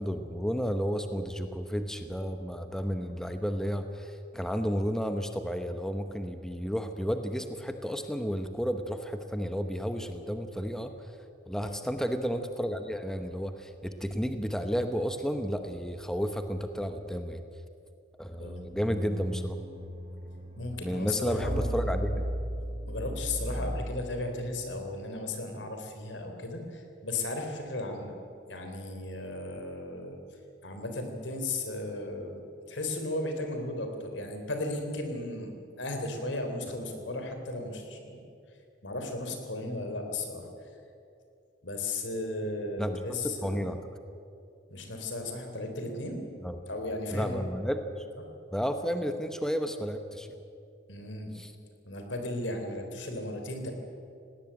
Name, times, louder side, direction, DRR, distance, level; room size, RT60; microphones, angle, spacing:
voice 1, 0.0-11.1 11.5-17.4 18.2-19.6 20.8-22.3 42.8-43.8 46.4-46.5 47.1-48.0 48.5-50.4 51.4-51.5, equal, 5° left, 7 dB, 1.0 m, -32 dB
sound 1, 18.8-24.3, equal, 30° right, 1.4 m, -35 dB
voice 2, 20.6-22.1 22.9-28.1 28.5-30.2 30.6-32.4 32.7-38.2 38.8-40.7 41.6-43.7 44.7-46.2 46.7-47.4 50.9-51.3 51.9-53.7, left 2 dB, 85° left, 5 dB, 3.7 m, -35 dB
18.5 x 18.5 x 8.9 m, 2.5 s
head